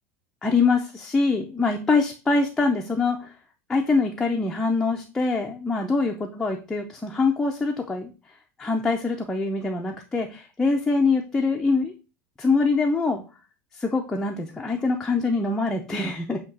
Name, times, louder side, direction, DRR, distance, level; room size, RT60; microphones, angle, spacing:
voice 1, 0.4-3.3 3.7-8.1 8.6-11.9 12.4-13.2 13.7-16.4, left 3 dB, 5° left, 2 dB, 0.6 m, -24 dB
8.1 x 2.9 x 5.3 m, 0.32 s
supercardioid pair, 170°, 7 cm